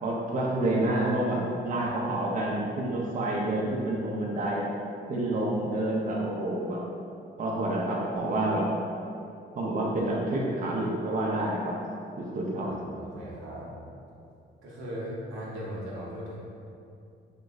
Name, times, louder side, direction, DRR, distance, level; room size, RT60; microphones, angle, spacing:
voice 1, 0.0-4.7 5.1-6.8 7.4-8.7 9.6-11.8 12.2-12.7, right 1 dB, 40° right, -3 dB, 0.5 m, -28 dB
voice 2, 12.6-13.7 14.6-16.4, equal, 85° right, -6 dB, 0.8 m, -38 dB
2.9 x 2.1 x 3.4 m, 2.5 s
cardioid pair, 90°, 20 cm